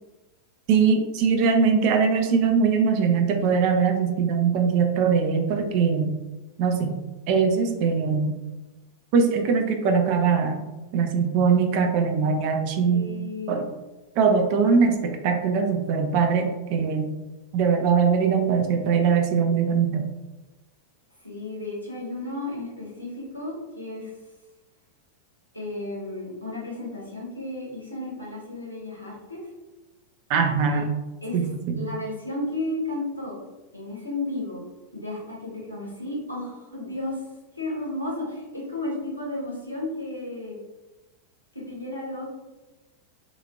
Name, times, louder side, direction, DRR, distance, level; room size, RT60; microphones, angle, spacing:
voice 1, 0.7-6.2 6.6-7.0 7.3-8.3 9.1-10.7 10.9-13.1 13.5-13.7 14.2-17.1 17.5-20.1 30.3-30.9 31.3-31.9, right 5 dB, 45° right, 4 dB, 0.4 m, -21 dB
voice 2, 12.9-13.6 21.2-24.1 25.5-29.4 30.7-30.8 31.2-31.4 31.8-33.4 33.7-34.7 34.9-37.2 37.6-40.6 41.5-42.3, left 2 dB, 85° left, -5 dB, 0.9 m, -33 dB
3.0 x 2.4 x 2.5 m, 1.1 s
figure-of-eight pair, 90°, 0 cm